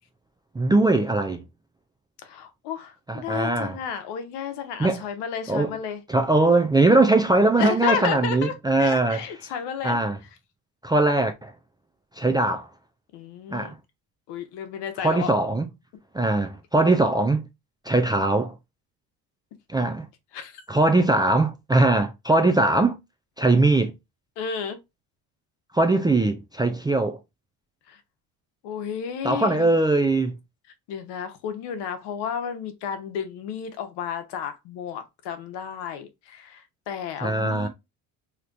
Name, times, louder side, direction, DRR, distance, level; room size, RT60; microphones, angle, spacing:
voice 1, 0.6-1.4 3.1-3.8 4.8-5.0 5.5-5.8 6.1-9.2 9.8-10.2 10.8-11.5 12.2-12.7 13.5-13.7 15.0-15.7 16.1-17.5 17.9-18.5 19.7-20.1 20.7-23.0 23.4-23.9 25.7-27.2 29.2-30.3 37.2-37.7, right 2 dB, 10° right, 0.3 m, -21 dB
voice 2, 2.2-6.0 7.6-10.0 13.1-13.7 14.3-15.3 20.3-20.6 24.4-24.8 27.9-28.0 28.6-29.7 30.9-37.7, left 7 dB, 75° left, 0.9 m, -32 dB
3.3 x 2.9 x 2.5 m
cardioid pair, 95°, 41 cm